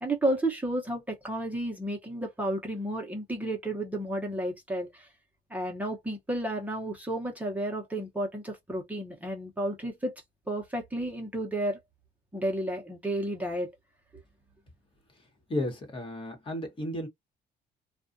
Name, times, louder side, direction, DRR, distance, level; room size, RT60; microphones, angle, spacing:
voice 1, 0.0-5.1 5.5-10.2 10.5-11.8 12.3-13.7, right 1 dB, 10° right, 0.9 m, -32 dB
voice 2, 15.5-17.1, left 1 dB, 30° left, 1.2 m, -33 dB
2.4 x 2.3 x 2.6 m
cardioid pair, 110°, 17 cm